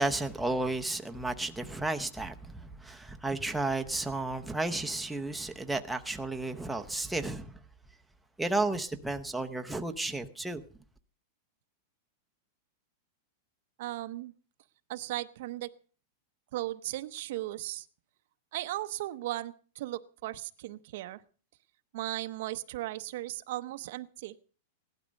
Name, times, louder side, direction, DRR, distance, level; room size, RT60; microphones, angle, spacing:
voice 1, 0.0-7.6 8.4-10.6, right 2 dB, ahead, 0.7 m, -33 dB
voice 2, 13.8-14.3 14.9-15.7 16.5-17.9 18.5-21.2 21.9-24.4, right 16 dB, 50° right, 0.7 m, -37 dB
17.0 x 12.0 x 5.2 m
supercardioid pair, 170°, 0 cm